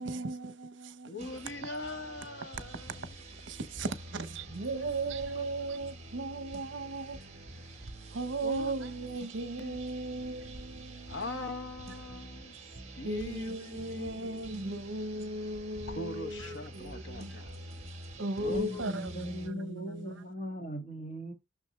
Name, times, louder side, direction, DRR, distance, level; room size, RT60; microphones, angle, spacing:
voice 1, 0.0-1.1 3.5-7.2 8.1-11.2 13.0-17.3 18.2-20.1, right 2 dB, 65° right, 0.8 m, -37 dB
voice 2, 1.1-3.2 4.6-5.4 8.4-8.7 9.6-9.8 11.1-12.5 12.9-14.8 15.9-17.6 18.4-18.8, left 2 dB, 65° left, 1.0 m, -42 dB
sound 1, 1.2-19.5, right 2 dB, 35° right, 1.8 m, -47 dB
voice 3, 18.5-21.3, equal, 35° left, 2.0 m, -39 dB
6.3 x 6.2 x 3.2 m
head